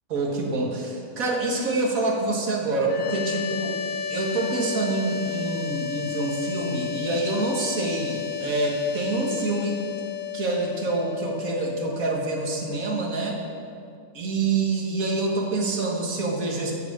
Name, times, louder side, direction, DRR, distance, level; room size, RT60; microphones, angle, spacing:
voice 1, 0.1-3.7 4.1-9.8 10.3-13.4 14.1-16.7, right 3 dB, 75° right, -1 dB, 2.0 m, -26 dB
sound 1, 2.8-13.9, left 8 dB, 70° left, 1.1 m, -33 dB
13.0 x 5.0 x 7.3 m, 2.3 s
omnidirectional pair, 1.5 m